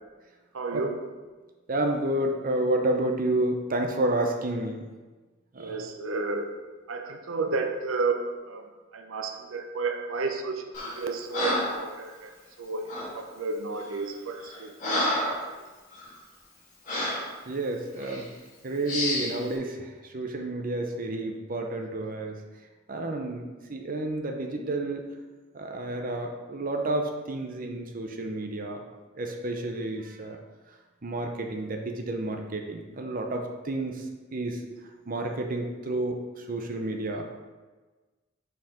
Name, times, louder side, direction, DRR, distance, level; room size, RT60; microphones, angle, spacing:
voice 1, 0.5-1.0 5.6-6.5 6.9-8.6 8.9-10.6 11.0-12.3 12.6-12.9 13.1-15.4 29.5-29.7, right 3 dB, 90° right, 5 dB, 0.7 m, -32 dB
voice 2, 1.7-4.8 5.5-5.8 17.5-18.3 18.6-22.4 22.9-25.0 25.5-28.8 29.2-30.4 31.0-34.0 34.3-34.6 35.1-37.3, right 2 dB, 45° right, 3 dB, 0.7 m, -30 dB
Breathing, 10.7-11.0 11.3-11.8 12.9-13.1 13.8-14.0 14.4-15.4 15.9-16.1 16.9-17.3 18.0-18.2 18.9-19.3, left 1 dB, 40° left, 2.0 m, -29 dB
6.0 x 4.9 x 5.0 m, 1.3 s
head